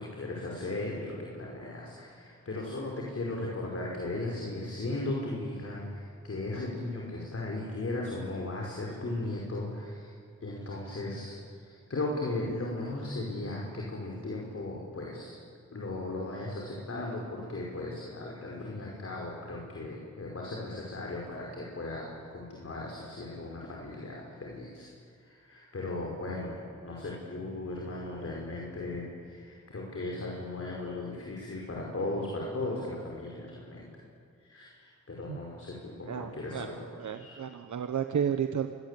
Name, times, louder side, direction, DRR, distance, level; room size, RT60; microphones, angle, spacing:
voice 1, 0.0-10.1 10.4-15.3 15.7-24.9 25.2-33.9 34.5-37.4, left 2 dB, 50° left, -2 dB, 5.5 m, -37 dB
voice 2, 36.1-36.7 36.9-38.7, right 8 dB, 75° right, 7 dB, 1.2 m, -32 dB
27.0 x 22.0 x 8.5 m, 2.3 s
cardioid pair, 80°, 30 cm